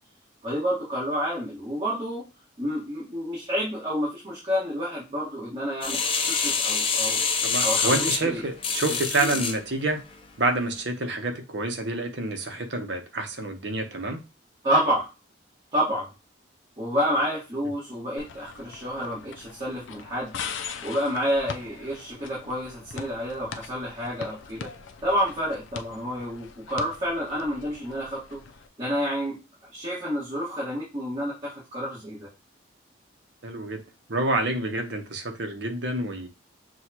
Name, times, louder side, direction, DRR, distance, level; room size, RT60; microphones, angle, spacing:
voice 1, 0.4-2.2 2.6-7.2 7.6-8.4 9.1-9.4 14.6-15.0 15.7-16.1 16.8-20.3 20.8-24.7 25.0-28.4 28.8-29.4 29.7-32.3, equal, 25° right, -8 dB, 1.6 m, -29 dB
sound 1, 5.8-9.6 10.1-10.2, left 5 dB, 25° left, 0.5 m, -26 dB
voice 2, 7.4-10.0 10.4-14.2 33.4-33.8 34.1-36.3, right 2 dB, 65° right, 5 dB, 0.9 m, -28 dB
sound 2, 18.2-28.7, left 6 dB, 75° left, 0.5 m, -41 dB
6.2 x 2.3 x 2.9 m, 0.29 s
head